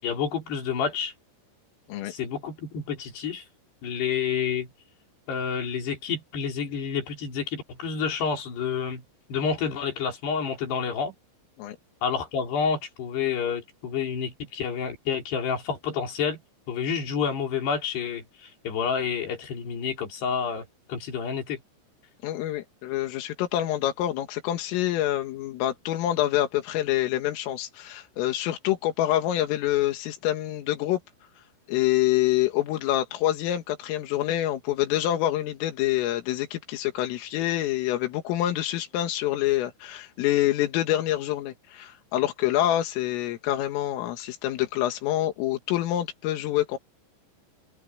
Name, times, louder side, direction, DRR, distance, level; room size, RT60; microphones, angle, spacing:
voice 1, 0.0-1.1 2.0-3.4 3.8-4.7 5.3-9.0 9.3-11.1 12.0-16.4 16.7-21.6, left 6 dB, 55° left, 6.2 m, -29 dB
voice 2, 22.2-31.0 31.7-46.8, left 13 dB, 90° left, 4.4 m, -26 dB
omnidirectional pair, 5.7 m